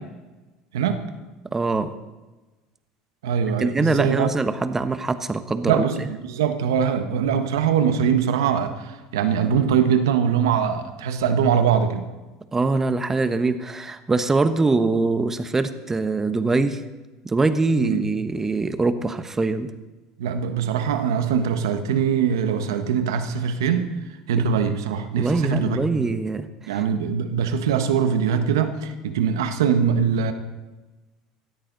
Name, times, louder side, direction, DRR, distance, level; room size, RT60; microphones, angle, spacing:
voice 1, 1.5-1.9 3.6-5.8 12.5-16.8 17.2-19.7 25.2-26.8, right 3 dB, 20° right, 10 dB, 1.2 m, -23 dB
voice 2, 3.2-4.3 5.7-12.1 17.8-18.1 20.2-23.9 24.3-26.1 26.7-30.3, right 7 dB, 90° right, 8 dB, 1.4 m, -22 dB
18.5 x 13.5 x 4.1 m, 1.2 s
supercardioid pair, 90°, 2 cm